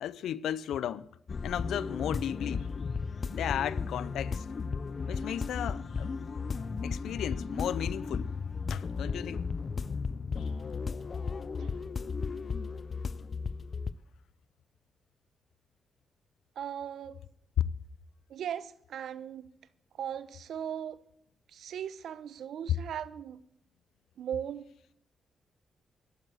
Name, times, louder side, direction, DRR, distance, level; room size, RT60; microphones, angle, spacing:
voice 1, 0.0-1.1 1.4-2.7 3.3-4.5 5.1-6.1 6.8-8.3 8.7-9.5 10.4-10.5 17.6-17.7, left 10 dB, 90° left, 0.6 m, -34 dB
sound 1, 1.3-13.9, left 5 dB, 45° left, 0.6 m, -35 dB
voice 2, 16.6-17.2 18.3-19.5 20.0-21.0 21.5-23.4 24.2-24.6, right 9 dB, 80° right, 1.0 m, -38 dB
12.5 x 12.0 x 8.0 m
cardioid pair, 80°, 0 cm